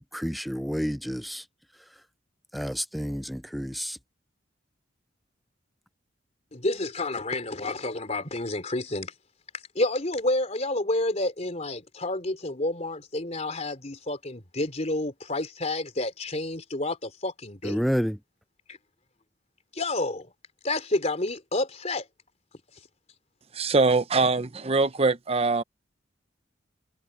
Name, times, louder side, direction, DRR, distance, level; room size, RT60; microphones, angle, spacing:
voice 1, 0.1-1.4 2.5-4.0 17.6-18.2, equal, ahead, 0.4 m, -29 dB
voice 2, 6.5-9.1 9.8-17.8 19.7-20.3 20.6-22.1, left 2 dB, 35° left, 3.6 m, -29 dB
voice 3, 23.5-25.6, right 3 dB, 30° right, 0.8 m, -23 dB
head